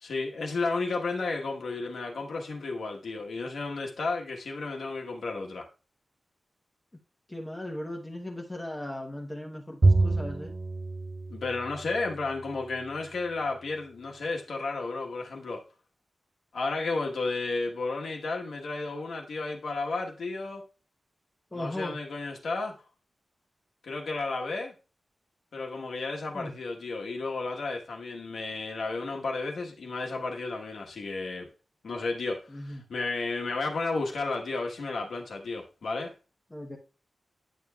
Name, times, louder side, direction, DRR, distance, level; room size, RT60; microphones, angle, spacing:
voice 1, 0.0-5.7 11.3-15.6 16.5-20.6 21.5-22.8 23.8-24.7 25.5-31.5 31.8-36.1, left 3 dB, 75° left, 1.2 m, -33 dB
voice 2, 7.3-10.5 21.5-22.0 26.3-26.5 32.5-32.8 36.5-36.8, left 1 dB, 15° left, 0.9 m, -37 dB
Bowed string instrument, 9.8-12.4, right 2 dB, 30° right, 0.3 m, -26 dB
10.0 x 6.8 x 2.3 m
wide cardioid pair, 170°, 0 cm